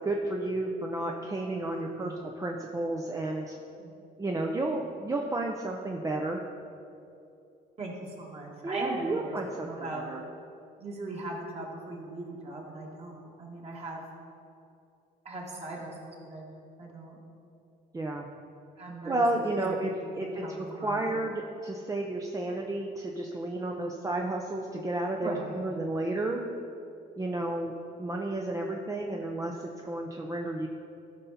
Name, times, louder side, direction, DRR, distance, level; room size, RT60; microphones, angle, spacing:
voice 1, 0.0-3.5 4.2-6.4 8.6-10.2 17.9-18.3 19.0-26.4 27.2-27.7 28.0-30.7, right 2 dB, 20° right, 1 dB, 0.7 m, -32 dB
voice 2, 1.7-2.2 3.8-4.0 7.8-10.0 10.8-14.0 15.2-16.4 16.8-17.2 18.8-21.2 23.5-23.9 25.2-25.6, right 2 dB, 35° right, -2 dB, 2.3 m, -40 dB
14.0 x 5.6 x 4.2 m, 2.7 s
cardioid pair, 110°, 17 cm